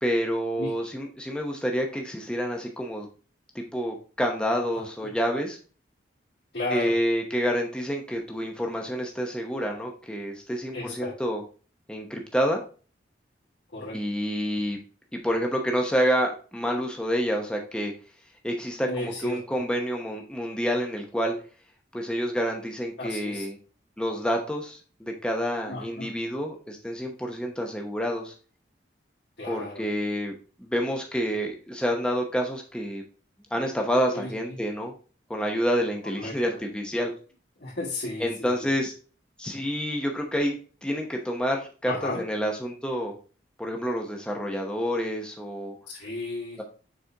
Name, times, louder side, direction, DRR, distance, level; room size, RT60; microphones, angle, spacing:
voice 1, 0.0-3.1 3.5-5.6 6.7-11.4 11.9-12.6 13.9-14.8 15.1-17.9 18.4-21.3 21.9-23.6 24.0-28.3 29.5-30.3 30.6-33.0 33.5-34.9 35.3-37.1 38.2-38.9 39.4-43.1 43.6-45.7, equal, 5° left, 1 dB, 0.8 m, -28 dB
voice 2, 4.7-5.1 6.5-6.9 10.7-11.1 13.7-14.0 18.9-19.4 23.0-23.4 25.7-26.1 29.4-29.8 34.1-34.3 36.1-36.4 37.6-38.7 41.8-42.2 45.9-46.6, left 2 dB, 70° left, -7 dB, 1.9 m, -34 dB
6.5 x 4.4 x 3.4 m, 0.37 s
head